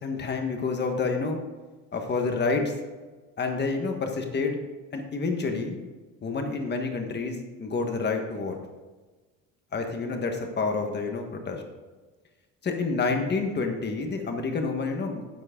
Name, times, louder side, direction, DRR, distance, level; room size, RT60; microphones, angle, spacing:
voice 1, 0.0-1.4 1.9-2.7 3.4-4.6 4.9-5.8 6.2-8.5 9.7-11.6 12.6-15.4, left 4 dB, 30° left, 4 dB, 1.5 m, -28 dB
10.5 x 7.6 x 3.8 m, 1.3 s
cardioid pair, 130°, 34 cm